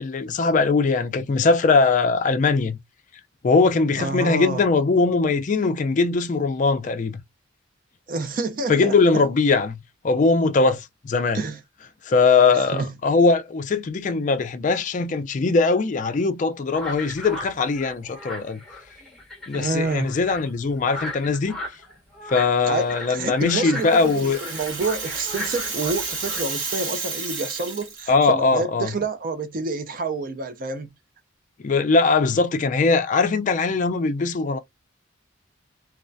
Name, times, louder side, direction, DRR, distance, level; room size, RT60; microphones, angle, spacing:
voice 1, 0.0-2.8 3.4-7.2 8.7-11.4 12.1-18.6 19.5-21.5 22.3-24.4 28.1-28.9 31.6-34.6, left 4 dB, 40° left, 0.3 m, -21 dB
voice 2, 4.0-4.6 8.1-8.9 11.3-11.6 12.5-12.9 19.5-20.2 22.7-30.9, right 3 dB, 45° right, 0.5 m, -28 dB
sound 1, 16.7-26.4, left 1 dB, ahead, 1.0 m, -37 dB
Rattle (instrument), 23.5-28.3, right 4 dB, 60° right, 1.1 m, -31 dB
2.3 x 2.1 x 2.5 m
head